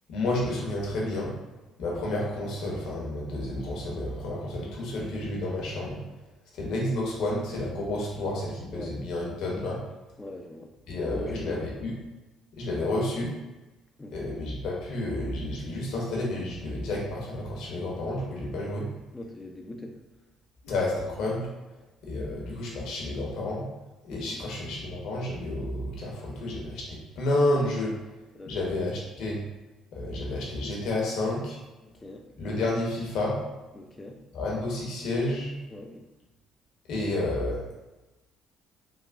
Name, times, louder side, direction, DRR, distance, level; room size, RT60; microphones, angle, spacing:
voice 1, 0.1-1.3 1.8-6.0 6.5-9.8 10.9-11.9 12.5-13.3 14.1-18.9 20.6-21.5 22.0-23.7 24.0-27.9 28.5-29.4 29.9-31.6 32.4-33.4 34.3-35.5 36.9-37.8, left 1 dB, 65° left, -3 dB, 0.8 m, -30 dB
voice 2, 10.2-11.6 14.0-14.4 19.1-20.0 24.1-24.4 28.3-28.9 31.8-32.3 33.7-34.2 35.7-36.1, left 1 dB, 20° left, 3 dB, 0.5 m, -42 dB
3.2 x 2.1 x 2.5 m, 1.1 s
hypercardioid pair, 55°, 0 cm